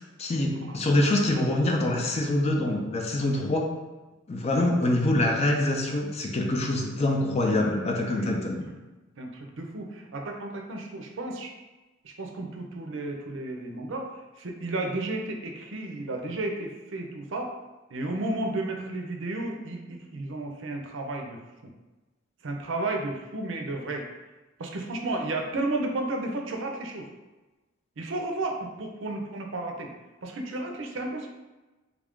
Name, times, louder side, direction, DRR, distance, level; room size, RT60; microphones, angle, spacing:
voice 1, 0.2-3.7 4.3-8.7, left 1 dB, 35° left, 1 dB, 0.5 m, -25 dB
voice 2, 9.2-11.5 12.0-14.1 14.4-17.5 17.9-21.7 22.4-24.1 24.6-27.1 28.0-29.9 30.2-31.3, right 2 dB, 80° right, 2 dB, 0.5 m, -33 dB
3.4 x 2.5 x 3.5 m, 1.1 s
head